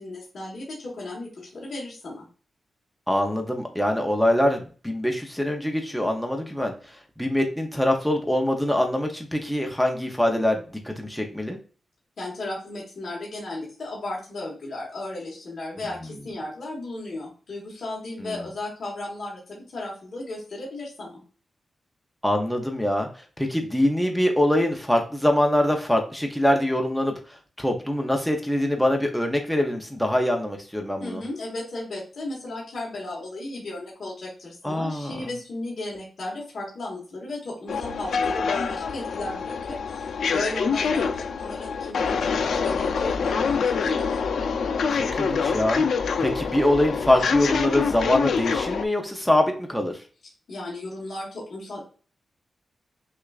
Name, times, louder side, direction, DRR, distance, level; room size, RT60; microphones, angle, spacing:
voice 1, 0.0-2.3 12.2-21.2 31.0-44.2 50.5-51.8, left 2 dB, 50° left, -4 dB, 1.3 m, -35 dB
voice 2, 3.1-6.7 7.2-11.6 18.2-18.4 22.2-23.1 23.4-31.2 34.6-35.3 44.9-45.8 46.2-49.9, left 1 dB, ahead, 2 dB, 0.5 m, -24 dB
sound 1, 37.7-48.9, left 5 dB, 85° left, 0.4 m, -25 dB
6.2 x 2.4 x 2.3 m, 0.38 s
wide cardioid pair, 180°, 0 cm